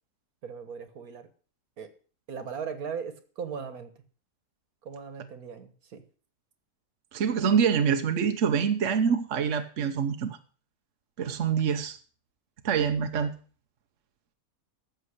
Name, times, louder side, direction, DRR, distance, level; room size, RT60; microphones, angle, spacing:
voice 1, 0.4-1.3 1.8-1.9 2.3-3.9 4.8-6.0, right 6 dB, 75° right, 10 dB, 1.8 m, -38 dB
voice 2, 7.1-10.4 11.2-12.0 12.6-13.3, right 7 dB, 60° right, 6 dB, 1.2 m, -25 dB
14.5 x 6.4 x 6.5 m, 0.41 s
omnidirectional pair, 1.6 m